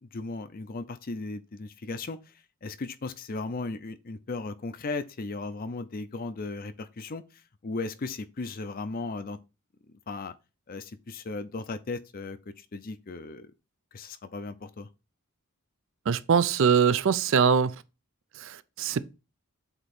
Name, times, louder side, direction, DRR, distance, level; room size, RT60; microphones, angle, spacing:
voice 1, 0.0-2.3 2.6-9.4 10.1-10.3 10.7-13.5 13.9-14.9, left 3 dB, 40° left, 0.5 m, -36 dB
voice 2, 16.1-17.7 18.4-19.0, right 6 dB, 60° right, 0.4 m, -23 dB
8.0 x 2.9 x 4.2 m
head